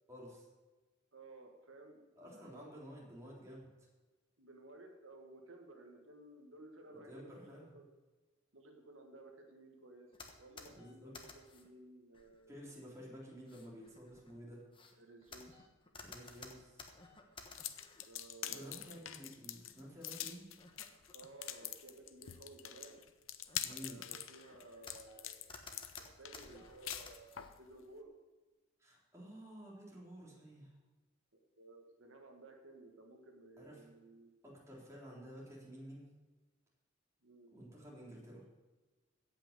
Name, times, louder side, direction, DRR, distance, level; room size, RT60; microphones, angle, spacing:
voice 1, 0.1-0.5 2.2-3.7 6.9-7.7 10.7-11.1 12.5-14.6 16.0-16.9 18.5-20.5 23.6-24.0 28.8-30.7 33.6-33.9 34.4-36.1 37.5-38.4, equal, 15° right, -4 dB, 3.6 m, -52 dB
voice 2, 1.1-2.7 4.4-7.9 8.5-10.1 10.4-12.6 15.0-15.7 18.0-19.0 21.1-23.0 23.8-28.1 31.6-34.3 37.2-37.5, right 2 dB, 75° right, 2 dB, 1.6 m, -56 dB
sound 1, 10.1-11.7 12.1-12.7 13.4-18.1 18.5-19.0 20.0-20.1 20.6-21.7 22.1-22.4 22.9-23.0 23.5-25.2 25.5-27.5, left 4 dB, 25° left, 1.3 m, -56 dB
sound 2, 17.5-27.6, left 11 dB, 80° left, 0.8 m, -45 dB
16.5 x 6.0 x 6.7 m, 1.2 s
head